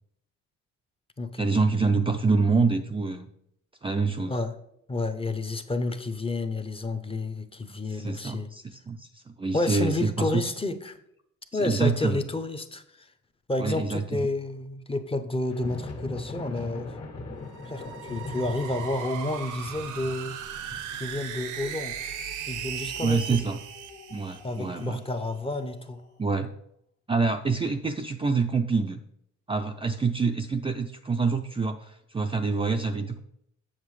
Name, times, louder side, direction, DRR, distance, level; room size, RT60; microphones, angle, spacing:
voice 1, 1.4-3.3 3.8-4.4 7.9-10.5 11.5-12.2 13.6-14.2 23.0-23.6 24.1-25.0 26.2-26.5 27.1-29.0 29.5-33.2, right 4 dB, 20° right, 5 dB, 0.4 m, -26 dB
voice 2, 4.9-8.5 9.5-11.0 11.5-13.1 13.5-16.9 17.7-20.4 20.9-22.2 22.5-23.4 24.4-26.0, left 2 dB, 20° left, 8 dB, 0.6 m, -30 dB
sound 1, 15.4-26.0, left 2 dB, 55° left, 1.7 m, -42 dB
sound 2, 17.4-24.9, right 9 dB, 80° right, 0.7 m, -38 dB
7.5 x 6.6 x 3.2 m, 0.75 s
cardioid pair, 90°, 30 cm